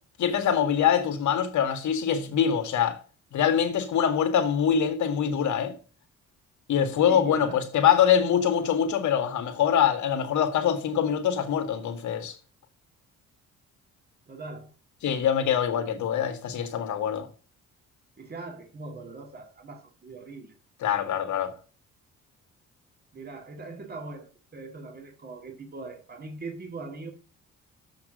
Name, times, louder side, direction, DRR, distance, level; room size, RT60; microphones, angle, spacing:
voice 1, 0.2-3.0 3.3-5.7 6.7-12.3 15.0-17.3 20.8-21.5, left 8 dB, 70° left, 1.8 m, -24 dB
voice 2, 7.1-7.6 14.3-14.7 18.2-20.6 23.1-27.1, right 3 dB, 30° right, 2.2 m, -41 dB
7.5 x 6.0 x 6.5 m
cardioid pair, 90°, 30 cm